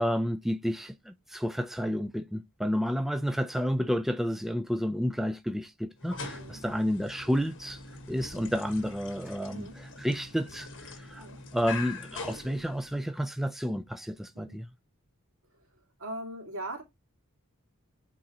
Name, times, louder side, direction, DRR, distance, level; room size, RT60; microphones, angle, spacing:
voice 1, 0.0-7.8 8.1-11.3 11.5-14.7, equal, ahead, 0.3 m, -30 dB
sound 1, 6.0-13.2, left 4 dB, 60° left, 1.4 m, -43 dB
voice 2, 6.3-6.6 9.5-9.8 11.2-11.4 14.3-14.6 16.0-16.8, right 1 dB, 65° right, 2.2 m, -40 dB
8.5 x 3.7 x 2.9 m
head